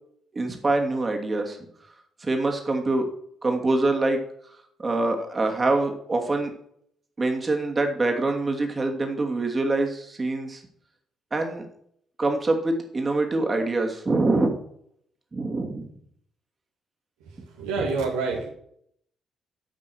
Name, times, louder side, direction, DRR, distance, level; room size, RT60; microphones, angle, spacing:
voice 1, 0.3-1.6 2.2-3.0 3.4-4.2 4.8-6.5 7.2-10.6 11.3-11.7 12.2-14.5 15.3-15.9, right 2 dB, 30° right, 3 dB, 2.5 m, -25 dB
voice 2, 17.2-18.5, right 4 dB, 75° right, 0 dB, 1.9 m, -28 dB
11.0 x 6.1 x 6.2 m, 0.67 s
figure-of-eight pair, 45°, 0 cm